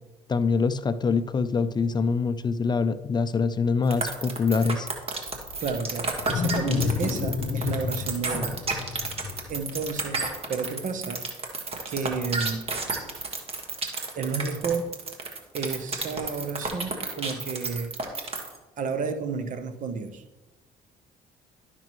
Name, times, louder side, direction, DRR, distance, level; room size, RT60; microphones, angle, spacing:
voice 1, 0.3-4.9, left 4 dB, 30° left, 13 dB, 0.4 m, -24 dB
sound 1, 3.9-18.6, right 3 dB, 40° right, 1.7 m, -31 dB
Wild animals, 5.3-10.3, left 5 dB, 55° left, 0.7 m, -30 dB
voice 2, 5.6-8.5 9.5-10.2 10.5-11.2 11.9-12.6 14.1-14.9 15.5-17.9 18.8-20.2, right 5 dB, 55° right, 9 dB, 0.9 m, -31 dB
12.0 x 5.9 x 3.1 m, 1.1 s
supercardioid pair, 75°, 15 cm